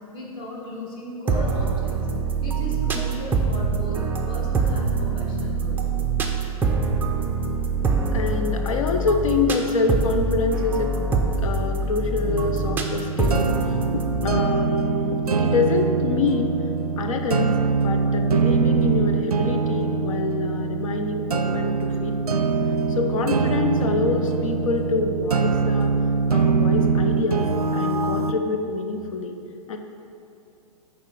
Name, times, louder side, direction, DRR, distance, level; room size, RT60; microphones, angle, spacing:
voice 1, 0.1-2.0 2.4-5.9, left 1 dB, 25° left, -3 dB, 1.5 m, -36 dB
sound 1, 1.3-14.4, right 3 dB, 10° right, 0.5 m, -24 dB
voice 2, 8.1-11.0 11.3-13.5 13.9-16.6 17.0-17.6 17.8-22.4 22.9-26.0 26.3-29.4 29.7-29.8, left 3 dB, 60° left, 5 dB, 0.6 m, -26 dB
sound 2, 12.2-28.3, right 4 dB, 90° right, 0.4 m, -23 dB
6.4 x 4.4 x 4.9 m, 2.6 s
figure-of-eight pair, 115°, 19 cm